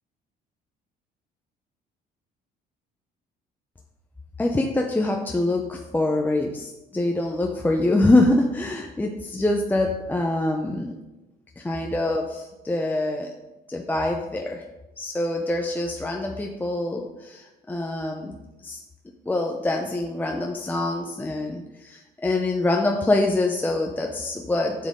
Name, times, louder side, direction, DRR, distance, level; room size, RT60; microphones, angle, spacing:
voice 1, 4.4-10.9 11.6-13.3 13.7-14.6 15.0-18.4 18.6-18.8 19.3-24.9, left 2 dB, 10° left, 2 dB, 0.7 m, -25 dB
9.4 x 7.5 x 3.6 m, 1.1 s
cardioid pair, 110°, 17 cm